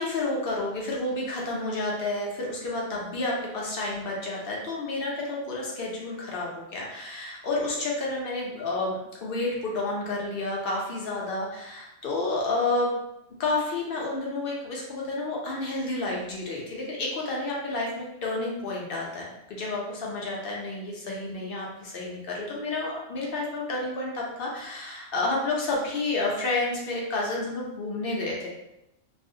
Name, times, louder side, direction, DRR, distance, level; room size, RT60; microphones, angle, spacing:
voice 1, 0.0-12.9 13.4-28.5, left 2 dB, 60° left, -3 dB, 0.7 m, -30 dB
2.4 x 2.0 x 2.6 m, 0.87 s
omnidirectional pair, 1.3 m